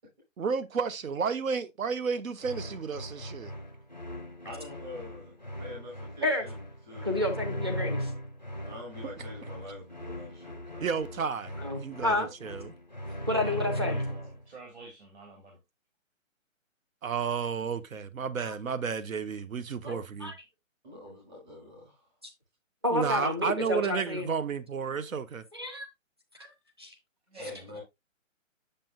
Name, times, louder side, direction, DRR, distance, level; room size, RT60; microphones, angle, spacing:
voice 1, 0.4-3.5 10.8-12.7 17.0-20.3 22.9-25.4, right 6 dB, 90° right, 0.9 m, -32 dB
sound 1, 2.4-14.4, equal, 35° left, 0.4 m, -38 dB
voice 2, 4.4-7.2 8.6-10.9 19.8-20.0 20.8-22.1 27.4-27.8, left 1 dB, 35° right, 5.5 m, -45 dB
voice 3, 7.0-8.1 11.6-12.3 13.3-14.0 18.4-18.5 20.2-20.3 22.8-24.3 25.5-25.9 26.4-26.5 26.8-26.9, left 2 dB, 20° right, 0.6 m, -30 dB
voice 4, 13.4-15.6 27.3-27.8, right 3 dB, 55° right, 3.0 m, -48 dB
7.6 x 6.7 x 2.5 m
hypercardioid pair, 180°, 39 cm